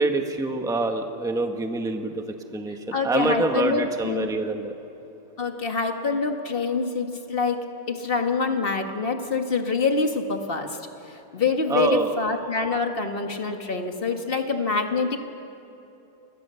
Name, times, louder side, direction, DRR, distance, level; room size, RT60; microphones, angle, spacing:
voice 1, 0.0-4.7 11.7-12.2, right 3 dB, ahead, 5 dB, 1.0 m, -26 dB
voice 2, 2.9-4.3 5.4-10.8 11.1-15.3, left 4 dB, 30° left, 4 dB, 1.7 m, -26 dB
29.5 x 21.5 x 7.0 m, 2.9 s
omnidirectional pair, 2.3 m